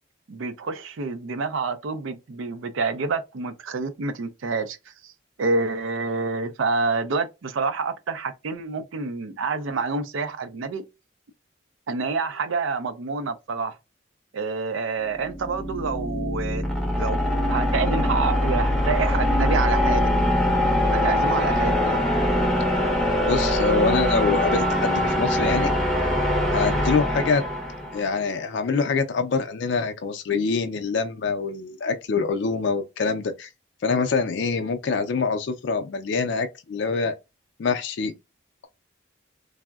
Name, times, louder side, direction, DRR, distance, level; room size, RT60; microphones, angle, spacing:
voice 1, 0.3-5.1 5.4-10.8 11.9-13.8 14.3-16.6 17.0-20.1 20.9-22.0, right 4 dB, 90° right, 0.5 m, -28 dB
sound 1, 15.0-28.2, left 1 dB, ahead, 0.5 m, -23 dB
voice 2, 23.2-25.7 26.5-27.4 27.9-33.5 33.8-37.1 37.6-38.1, left 4 dB, 65° left, 0.4 m, -25 dB
3.4 x 2.0 x 2.2 m
head